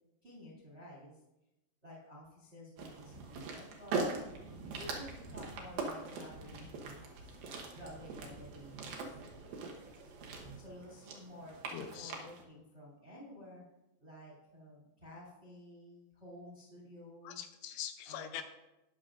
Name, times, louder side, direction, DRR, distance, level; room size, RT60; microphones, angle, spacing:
voice 1, 0.2-1.2 1.8-4.2 4.6-7.4 7.7-10.1 10.5-13.6 14.0-17.5 18.0-18.4, equal, 20° right, -5 dB, 1.7 m, -52 dB
sound 1, 2.8-12.4, right 3 dB, 70° right, 2.3 m, -42 dB
voice 2, 11.7-12.1 17.2-18.4, left 10 dB, 85° left, 7 dB, 3.4 m, -43 dB
20.0 x 6.8 x 2.5 m, 0.96 s
omnidirectional pair, 5.8 m